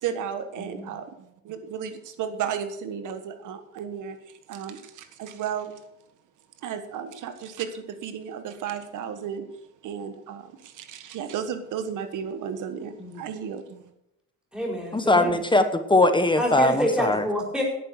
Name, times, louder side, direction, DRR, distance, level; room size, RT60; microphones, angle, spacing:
voice 1, 0.0-4.2 4.5-5.7 6.6-9.4 9.8-13.9, right 8 dB, 85° right, 9 dB, 1.5 m, -34 dB
voice 2, 0.6-0.9 13.0-13.2 14.5-15.4 16.4-17.6, equal, 5° right, -1 dB, 4.6 m, -28 dB
voice 3, 14.9-17.2, left 2 dB, 15° left, 9 dB, 1.1 m, -20 dB
11.0 x 9.2 x 6.4 m, 0.84 s
cardioid pair, 90°, 30 cm